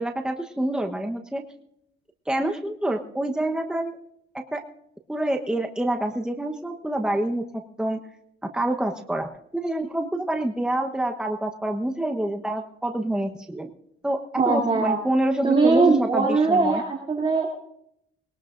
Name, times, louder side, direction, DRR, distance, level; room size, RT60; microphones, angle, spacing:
voice 1, 0.0-1.4 2.3-4.0 4.3-4.6 5.1-8.0 8.5-13.7 14.0-16.8, right 1 dB, 5° right, 4 dB, 1.1 m, -27 dB
voice 2, 14.4-15.0 15.4-17.5, right 4 dB, 25° right, -3 dB, 2.9 m, -21 dB
21.0 x 19.0 x 2.6 m, 0.75 s
cardioid pair, 90°, 20 cm